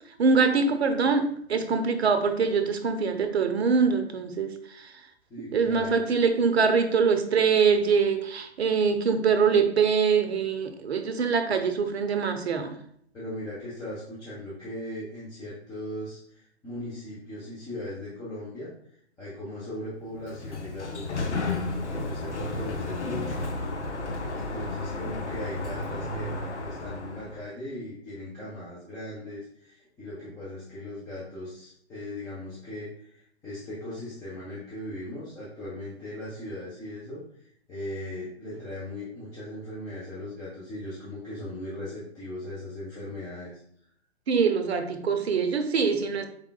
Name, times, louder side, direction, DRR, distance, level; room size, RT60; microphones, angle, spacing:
voice 1, 0.2-4.9 5.5-12.7 44.3-46.3, right 5 dB, 70° right, 8 dB, 0.7 m, -24 dB
voice 2, 5.3-6.0 13.1-18.7 19.2-23.4 24.3-37.2 37.7-43.6, left 1 dB, 10° left, -9 dB, 0.8 m, -38 dB
Sliding door, 20.1-27.5, left 2 dB, 80° left, 0.7 m, -33 dB
4.7 x 3.6 x 2.2 m, 0.67 s
figure-of-eight pair, 125°, 34 cm